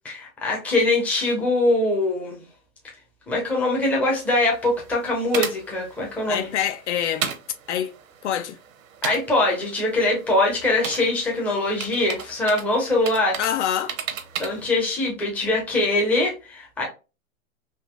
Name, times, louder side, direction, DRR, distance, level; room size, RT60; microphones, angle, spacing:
voice 1, 0.0-2.4 3.3-6.5 9.0-13.4 14.4-16.8, left 2 dB, 5° left, 0.5 m, -22 dB
sound 1, 4.2-14.7, right 8 dB, 70° right, 0.9 m, -36 dB
voice 2, 6.3-7.3 7.7-7.9 8.2-8.6 13.4-14.0, left 9 dB, 60° left, 0.5 m, -25 dB
3.7 x 2.5 x 2.3 m
hypercardioid pair, 140°, 42 cm